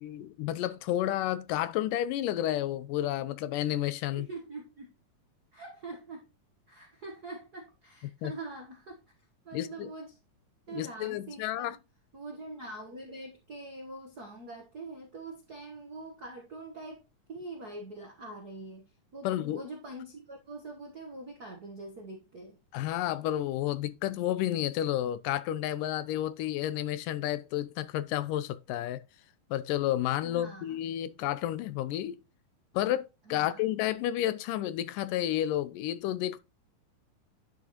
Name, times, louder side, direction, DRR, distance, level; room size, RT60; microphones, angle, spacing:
voice 1, 0.0-4.3 8.0-8.3 9.5-9.9 10.7-11.8 19.2-19.6 22.7-29.0 29.5-32.2 32.7-36.4, left 13 dB, 80° left, 2.2 m, -31 dB
voice 2, 4.1-4.9 5.5-6.3 6.7-9.0 9.4-10.2 10.7-11.8 12.1-22.6 30.2-30.8 33.3-33.6, right 2 dB, 60° right, 0.9 m, -44 dB
10.5 x 6.2 x 3.0 m
omnidirectional pair, 3.8 m